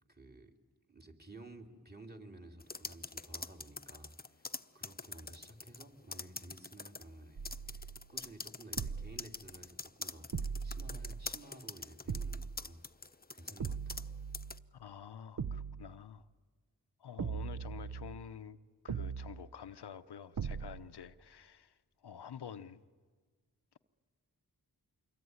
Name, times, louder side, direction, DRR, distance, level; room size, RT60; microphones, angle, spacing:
voice 1, 0.1-0.6 0.9-12.8 13.3-14.1, right 1 dB, 25° right, 3.1 m, -54 dB
sound 1, 2.6-5.8 6.1-7.0 7.4-14.1 14.3-14.6, left 3 dB, 25° left, 0.8 m, -44 dB
sound 2, 7.4-8.1 8.8-9.4 10.3-11.4 12.1-12.7 13.6-14.7 15.4-16.0 17.2-18.3 18.9-19.5 20.4-21.0, right 6 dB, 55° right, 0.7 m, -40 dB
voice 2, 14.7-16.2 17.0-18.6 18.8-21.7 22.0-22.8, left 8 dB, 90° left, 0.8 m, -48 dB
26.0 x 22.5 x 9.6 m
cardioid pair, 40°, 39 cm